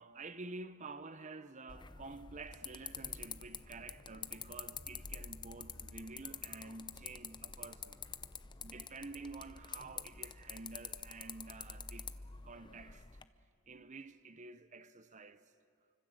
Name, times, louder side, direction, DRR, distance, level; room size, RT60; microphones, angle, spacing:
voice 1, 0.0-8.0 8.6-12.1 12.4-13.1 13.7-15.4, right 3 dB, 35° right, 0.8 m, -49 dB
sound 1, 1.7-13.2, left 6 dB, 20° left, 0.7 m, -47 dB
29.0 x 25.0 x 8.0 m
head